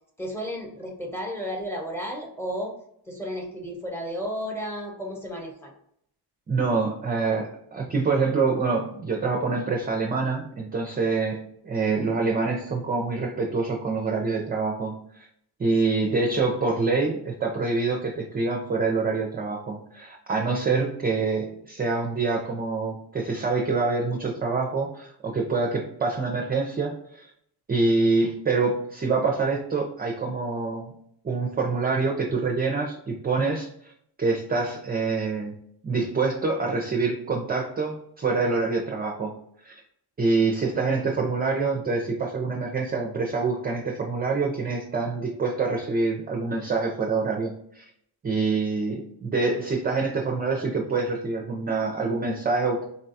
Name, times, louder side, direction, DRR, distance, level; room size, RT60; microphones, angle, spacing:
voice 1, 0.2-2.7 3.1-5.7, equal, 5° left, 0 dB, 0.9 m, -33 dB
voice 2, 6.5-15.3 15.6-27.3 27.7-30.9 31.2-33.9 34.2-35.6 35.8-39.3 39.6-39.7 40.2-47.8 48.2-52.8, right 4 dB, 25° right, 1 dB, 0.4 m, -26 dB
4.0 x 2.2 x 2.6 m, 0.71 s
cardioid pair, 95°, 41 cm